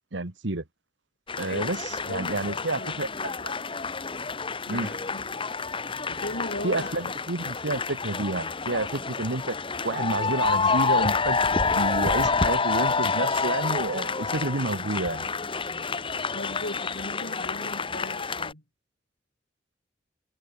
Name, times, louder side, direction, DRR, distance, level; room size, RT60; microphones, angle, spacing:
voice 1, 0.1-0.6 1.4-3.5 4.7-4.9 6.6-9.6 9.8-11.4 11.7-15.3, right 2 dB, 90° right, 1.7 m, -30 dB
sound 1, 1.3-18.5, left 4 dB, 30° left, 1.3 m, -28 dB
voice 2, 2.1-2.9 4.7-5.3 6.1-7.0 16.3-18.6, left 1 dB, 65° left, 6.7 m, -37 dB
head